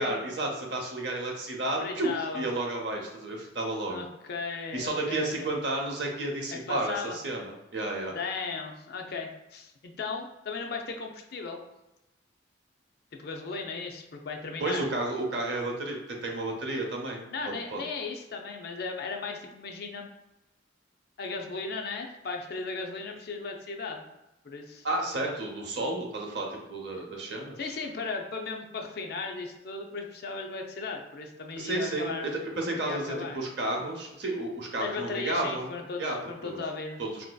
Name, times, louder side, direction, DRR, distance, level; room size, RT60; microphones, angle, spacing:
voice 1, 0.0-4.1 4.7-8.1 14.6-17.8 24.8-27.7 31.6-35.7 36.0-36.2 36.4-36.6 37.0-37.3, right 2 dB, 60° right, 1 dB, 0.7 m, -32 dB
voice 2, 1.8-2.5 3.9-5.5 6.5-7.2 8.1-11.6 13.2-14.8 17.3-20.1 21.2-24.1 24.4-24.8 27.6-32.2 32.8-33.4 34.8-37.0, left 4 dB, 55° left, 2 dB, 0.4 m, -36 dB
4.0 x 2.5 x 2.2 m, 0.93 s
head